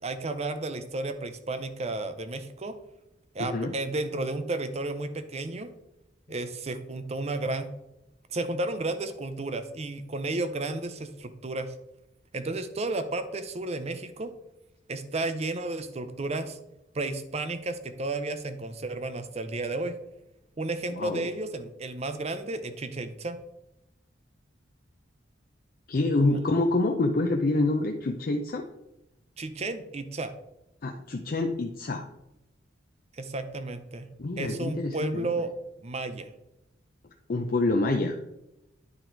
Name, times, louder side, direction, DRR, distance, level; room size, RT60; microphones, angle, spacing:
voice 1, 0.0-2.8 3.3-5.7 6.3-7.7 8.3-11.7 12.3-14.3 14.9-16.6 16.9-19.9 20.6-23.4 26.2-26.4 29.4-30.3 33.2-34.1 34.4-35.5 35.8-36.3, right 2 dB, 35° right, 10 dB, 0.6 m, -32 dB
voice 2, 3.4-3.7 20.9-21.3 25.9-28.7 30.8-32.0 34.2-35.3 37.3-38.2, left 2 dB, 50° left, 3 dB, 0.5 m, -27 dB
10.0 x 3.9 x 4.5 m, 0.89 s
head